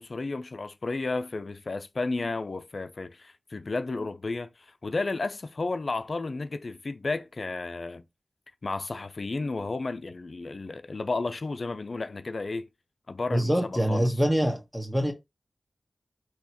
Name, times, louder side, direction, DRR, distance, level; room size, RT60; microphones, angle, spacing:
voice 1, 0.0-8.0 8.6-12.7 13.1-14.1, left 3 dB, 65° left, 0.4 m, -32 dB
voice 2, 13.3-15.1, equal, 5° right, 1.3 m, -25 dB
3.9 x 2.9 x 2.9 m
cardioid pair, 40°, 0 cm